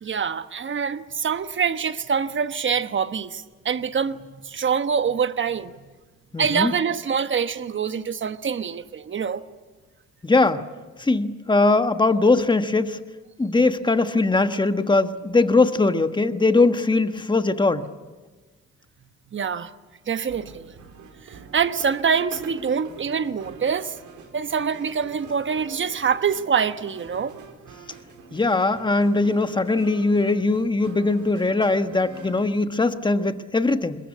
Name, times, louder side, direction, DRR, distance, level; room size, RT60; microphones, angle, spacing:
voice 1, 0.0-5.7 6.4-9.4 19.3-19.7 20.1-20.7 21.3-24.0 24.3-27.4, right 6 dB, 40° right, 1.2 m, -25 dB
voice 2, 6.3-6.7 10.2-10.6 11.0-13.0 13.4-17.9 28.3-34.0, left 3 dB, 15° left, 1.3 m, -20 dB
sound 1, 20.3-32.7, right 5 dB, 75° right, 3.8 m, -45 dB
22.0 x 21.0 x 8.5 m
cardioid pair, 90°, 30 cm